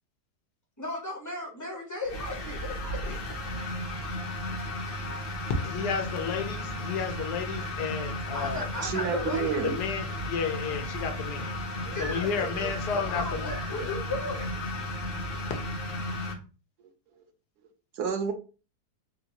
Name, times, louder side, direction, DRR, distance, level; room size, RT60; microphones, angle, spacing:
voice 1, 0.8-3.2 8.3-9.6 11.9-14.5, left 2 dB, 20° left, 0.6 m, -36 dB
sound 1, 2.0-16.3, left 1 dB, 45° left, 0.8 m, -34 dB
voice 2, 5.5-8.8 9.6-14.0 15.0-15.2 15.4-15.5, left 6 dB, 85° left, 1.3 m, -32 dB
voice 3, 8.8-9.7 11.9-12.0 18.0-18.3, right 6 dB, 80° right, 1.2 m, -29 dB
3.7 x 2.4 x 2.8 m
omnidirectional pair, 1.7 m